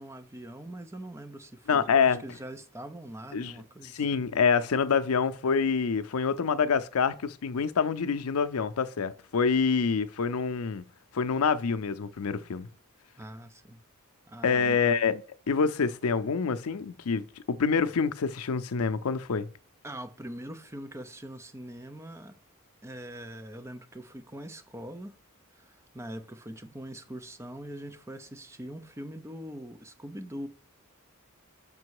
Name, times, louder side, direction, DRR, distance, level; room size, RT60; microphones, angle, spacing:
voice 1, 0.0-4.2 13.2-13.8 14.3-14.8 19.8-22.4 22.8-25.1 25.5-30.5, right 1 dB, 15° right, 0.6 m, -42 dB
voice 2, 1.7-2.2 3.3-3.5 3.8-10.8 11.1-12.7 14.4-15.2 15.5-19.5, left 5 dB, 80° left, 0.5 m, -26 dB
6.0 x 5.3 x 4.7 m
head